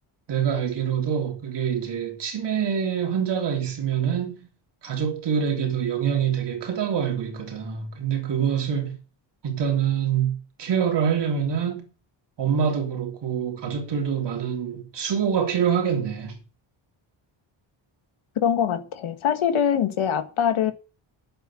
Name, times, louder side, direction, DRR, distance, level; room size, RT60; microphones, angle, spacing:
voice 1, 0.3-4.4 4.8-9.0 9.4-11.8 12.4-16.4, right 7 dB, 55° right, 3.3 m, -25 dB
voice 2, 18.4-20.7, left 8 dB, 75° left, 1.8 m, -23 dB
10.0 x 8.0 x 7.7 m
wide cardioid pair, 165°, 49 cm